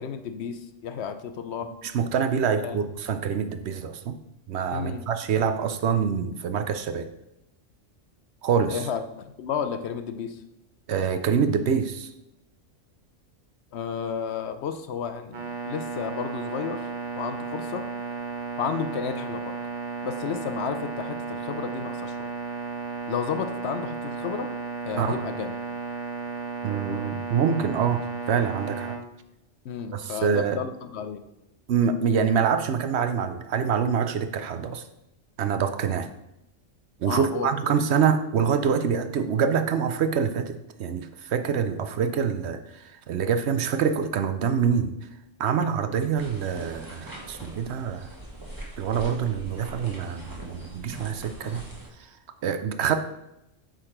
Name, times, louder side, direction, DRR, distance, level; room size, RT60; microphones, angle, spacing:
voice 1, 0.0-1.7 2.6-2.8 4.7-5.0 8.7-10.4 13.7-16.9 17.2-17.9 18.6-19.6 20.0-22.3 23.1-24.5 24.8-25.6 29.6-31.2 37.1-37.5, left 7 dB, 65° left, 9 dB, 0.8 m, -32 dB
voice 2, 1.8-4.2 4.5-7.1 8.4-8.9 10.9-12.1 25.0-25.2 26.6-29.0 29.9-30.6 31.7-34.9 35.4-36.1 37.0-44.9 45.4-48.1 48.8-51.6 52.0-52.1 52.4-53.0, right 7 dB, 65° right, 9 dB, 0.8 m, -25 dB
sound 1, 15.3-29.0, right 5 dB, 40° right, 1.1 m, -34 dB
sound 2, 46.1-51.9, right 2 dB, 15° right, 1.5 m, -42 dB
8.6 x 3.9 x 4.9 m, 0.86 s
omnidirectional pair, 1.3 m